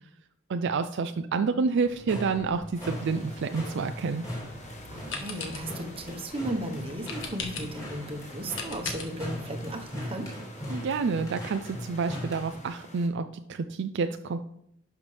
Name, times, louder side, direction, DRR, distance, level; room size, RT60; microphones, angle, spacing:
voice 1, 0.5-4.2 10.7-14.4, right 4 dB, 60° right, 8 dB, 0.4 m, -29 dB
sound 1, 1.8-12.7, equal, 15° left, 3.1 m, -40 dB
sound 2, 2.7-13.1, left 1 dB, 35° left, 1.4 m, -48 dB
sound 3, 4.3-9.9, left 4 dB, 65° left, 1.5 m, -41 dB
voice 2, 4.9-10.3, right 1 dB, 30° right, 3 dB, 1.1 m, -35 dB
11.5 x 5.8 x 3.3 m, 0.76 s
head